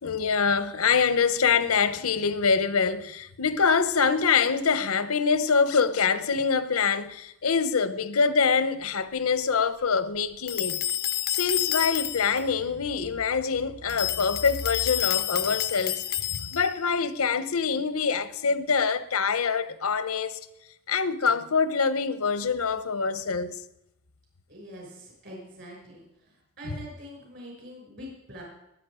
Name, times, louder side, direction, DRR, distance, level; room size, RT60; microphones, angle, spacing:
voice 1, 0.0-10.8 11.3-16.0 16.5-20.4 20.9-23.5, left 5 dB, 85° left, 0.9 m, -25 dB
sound 1, 10.5-12.4 13.9-16.8, left 13 dB, 45° left, 0.5 m, -29 dB
voice 2, 24.5-26.0 26.6-28.4, equal, 50° right, 6.1 m, -43 dB
20.5 x 9.1 x 5.0 m
head